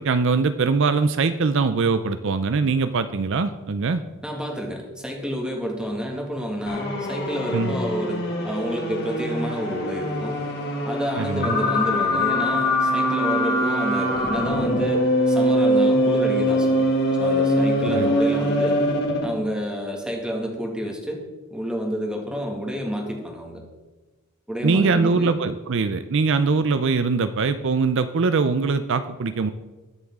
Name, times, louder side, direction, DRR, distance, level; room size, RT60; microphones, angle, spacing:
voice 1, 0.0-4.0 7.5-7.7 11.2-11.5 17.9-18.1 24.6-29.5, right 4 dB, 60° right, 11 dB, 0.5 m, -22 dB
voice 2, 4.2-10.4 10.8-16.9 17.2-18.8 19.2-21.2 21.5-23.6 24.5-25.3, equal, 5° right, 0 dB, 2.0 m, -29 dB
sound 1, 6.7-19.4, equal, 50° left, 2.2 m, -23 dB
20.5 x 7.3 x 3.7 m, 1.2 s
head